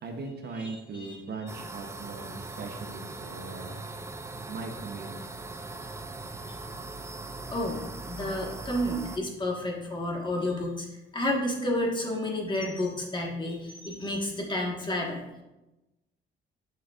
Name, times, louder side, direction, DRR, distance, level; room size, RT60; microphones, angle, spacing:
voice 1, 0.0-3.8 4.5-5.1, right 3 dB, 55° right, 4 dB, 0.9 m, -39 dB
voice 2, 0.6-1.2 6.4-6.5 7.5-10.9 11.1-15.2, left 1 dB, 25° left, -1 dB, 1.5 m, -31 dB
sound 1, 1.5-9.2, right 3 dB, 15° right, 0.4 m, -40 dB
6.7 x 6.4 x 2.4 m, 1.0 s
cardioid pair, 90°, 20 cm